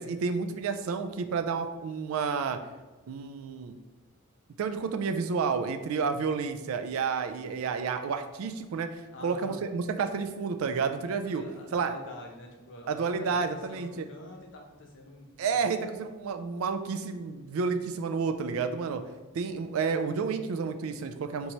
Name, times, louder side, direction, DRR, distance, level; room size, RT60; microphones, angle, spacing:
voice 1, 0.0-2.6 3.1-3.7 4.6-11.4 11.7-12.0 12.9-14.1 15.4-19.0 19.3-21.5, right 5 dB, 70° right, 8 dB, 0.3 m, -30 dB
voice 2, 9.1-9.6 11.3-15.8, left 1 dB, 60° left, 1 dB, 0.7 m, -47 dB
4.6 x 2.7 x 2.9 m, 1.2 s
head